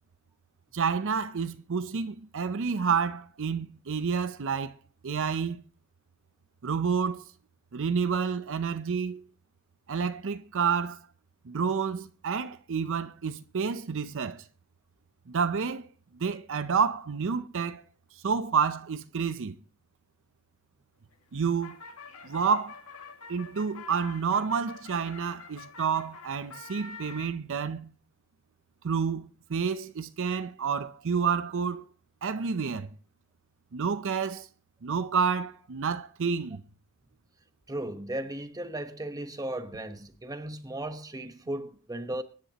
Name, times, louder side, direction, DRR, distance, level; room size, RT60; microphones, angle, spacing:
voice 1, 0.7-4.7 5.0-5.6 6.6-7.2 7.7-9.2 9.9-11.0 11.5-14.4 15.3-15.9 16.2-17.8 18.2-19.5 21.3-21.8 22.2-22.8 23.3-27.9 28.8-31.8 32.2-32.9 33.7-34.5 34.8-36.6, right 6 dB, 65° right, 0.6 m, -29 dB
sound 1, 21.1-27.3, left 5 dB, 90° left, 1.9 m, -47 dB
voice 2, 37.7-42.2, right 1 dB, 15° right, 1.0 m, -36 dB
24.0 x 10.0 x 2.9 m
head